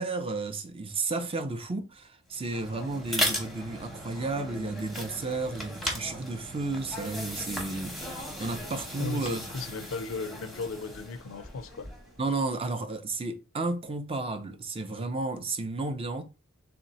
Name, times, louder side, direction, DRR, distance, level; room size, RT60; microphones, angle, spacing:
voice 1, 0.0-8.0 8.4-9.4 12.2-16.2, right 3 dB, 25° right, 0.5 m, -32 dB
sound 1, 2.3-12.2, equal, ahead, 0.8 m, -37 dB
sound 2, 6.5-12.4, right 1 dB, 65° right, 1.0 m, -56 dB
voice 2, 9.0-11.9, left 3 dB, 70° left, 0.4 m, -36 dB
3.3 x 2.9 x 4.0 m
head